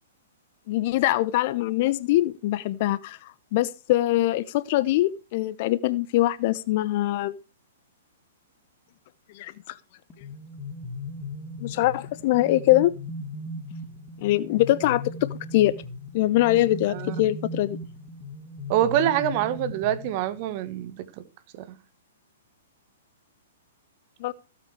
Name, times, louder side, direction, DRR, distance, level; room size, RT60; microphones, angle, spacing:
voice 1, 0.7-3.2 3.5-7.4 9.3-9.5 11.6-12.9 14.2-15.7 16.1-17.8 24.2-24.3, left 16 dB, 45° left, 0.8 m, -23 dB
sound 1, 10.1-20.6, left 2 dB, 20° left, 2.1 m, -38 dB
voice 2, 18.7-21.1 21.6-21.7, right 11 dB, 40° right, 1.7 m, -25 dB
16.0 x 8.5 x 4.8 m
figure-of-eight pair, 110°, 0 cm